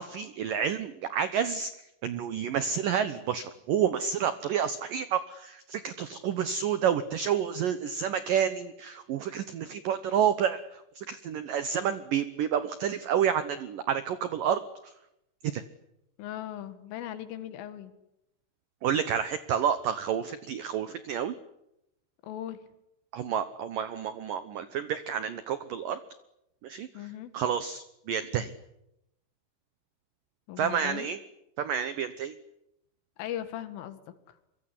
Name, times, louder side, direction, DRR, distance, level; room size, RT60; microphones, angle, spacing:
voice 1, 0.0-1.7 2.0-14.9 15.4-15.6 18.8-21.3 23.1-26.0 26.6-26.9 27.3-28.5 30.6-31.2 31.6-32.4, right 8 dB, 80° right, 13 dB, 1.9 m, -29 dB
voice 2, 16.2-17.9 22.2-22.6 26.9-27.3 30.5-31.1 33.2-34.0, left 11 dB, 90° left, 11 dB, 4.3 m, -38 dB
25.0 x 23.0 x 9.9 m, 0.84 s
omnidirectional pair, 5.6 m